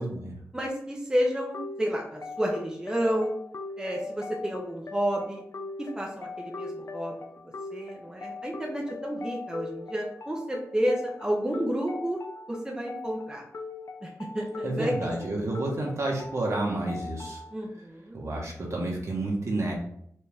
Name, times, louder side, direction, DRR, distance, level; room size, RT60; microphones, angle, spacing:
voice 1, 0.0-0.3 14.6-17.4 18.1-19.7, right 2 dB, 60° right, -2 dB, 1.4 m, -30 dB
voice 2, 0.5-3.3 3.8-5.4 5.8-7.2 7.7-12.2 12.5-13.4 14.0-14.9 17.5-18.2, equal, 10° right, -1 dB, 0.8 m, -30 dB
sound 1, 1.5-17.5, left 3 dB, 60° left, 0.5 m, -40 dB
4.4 x 2.9 x 3.5 m, 0.70 s
wide cardioid pair, 95°, 6 cm